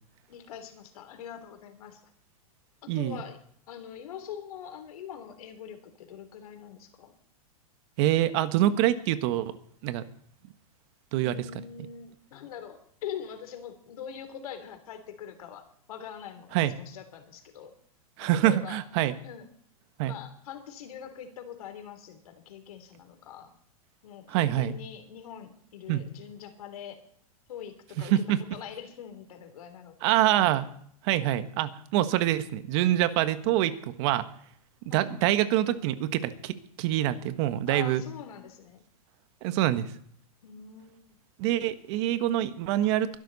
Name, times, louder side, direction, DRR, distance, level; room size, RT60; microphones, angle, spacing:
voice 1, 0.3-2.0 2.8-3.4 3.7-7.2 11.1-17.7 18.2-18.8 19.2-19.5 20.0-23.5 24.0-27.0 27.5-28.2 28.5-30.1 34.9-35.1 37.7-38.8 40.4-41.2, left 8 dB, 75° left, 7 dB, 3.5 m, -43 dB
voice 2, 2.9-3.2 8.0-9.5 9.8-10.0 11.1-11.4 16.5-16.7 18.2-19.1 20.0-20.1 24.3-24.7 25.9-26.0 28.0-28.4 30.0-30.7 31.0-34.2 34.9-38.0 39.4-39.9 41.4-43.1, right 13 dB, 50° right, 11 dB, 1.4 m, -25 dB
22.5 x 12.0 x 4.2 m, 0.65 s
hypercardioid pair, 140°, 19 cm